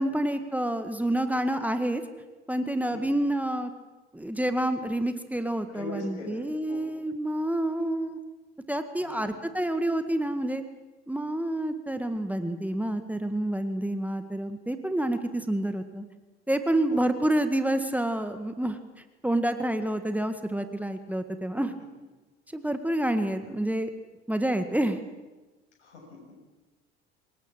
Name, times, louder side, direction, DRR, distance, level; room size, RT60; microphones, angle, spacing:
voice 1, 0.0-2.0 2.5-3.7 4.1-8.2 8.7-10.6 11.1-16.1 16.5-18.8 19.2-21.7 22.5-23.9 24.3-25.0, right 1 dB, 5° right, 8 dB, 1.8 m, -28 dB
voice 2, 2.9-3.2 5.7-6.4 6.7-6.8 9.0-9.3 16.9-17.2 23.4-23.5 25.8-26.2, left 1 dB, 75° left, 1 dB, 7.2 m, -41 dB
25.5 x 20.5 x 7.5 m, 1.2 s
figure-of-eight pair, 60°, 34 cm